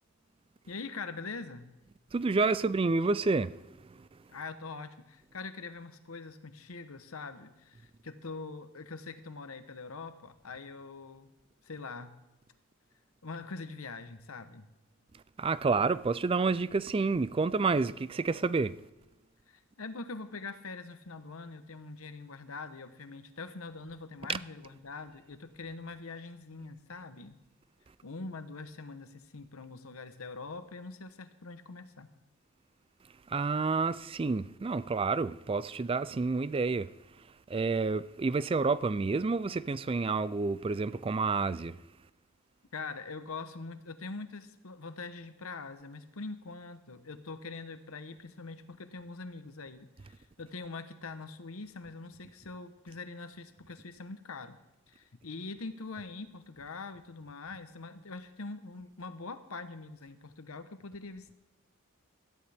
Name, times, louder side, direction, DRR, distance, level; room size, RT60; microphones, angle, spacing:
voice 1, 0.7-1.7 4.3-11.3 11.6-12.1 13.2-14.7 19.5-27.4 28.0-32.1 42.7-54.6 54.9-61.3, left 3 dB, 75° left, 1.0 m, -43 dB
voice 2, 2.1-4.1 15.4-18.8 24.3-24.4 33.3-36.9 37.2-41.8, right 4 dB, 25° right, 0.3 m, -29 dB
17.5 x 14.0 x 3.5 m
head